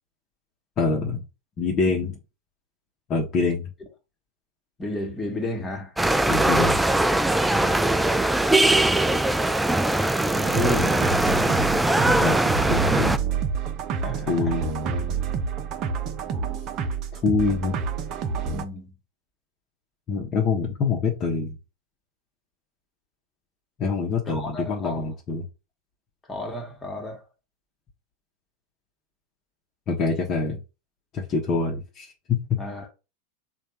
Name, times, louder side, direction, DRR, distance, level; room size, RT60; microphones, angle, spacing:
voice 1, 0.8-1.2 1.6-2.2 3.1-3.7 6.3-6.8 12.1-12.4 12.7-13.2 14.3-14.7 17.1-17.8 20.1-21.5 23.8-25.5 29.9-30.6 31.1-32.6, left 4 dB, 35° left, 1.0 m, -25 dB
voice 2, 4.8-6.0 7.5-8.2 8.7-9.1 10.3-11.0 14.0-14.5 18.5-19.0 24.3-25.0 26.3-27.2 32.6-32.9, left 2 dB, 15° left, 1.5 m, -32 dB
sound 1, 6.0-13.2, right 1 dB, 5° right, 0.3 m, -21 dB
sound 2, 10.4-18.6, right 5 dB, 45° right, 0.7 m, -28 dB
3.3 x 2.4 x 4.3 m
hypercardioid pair, 95°, 0 cm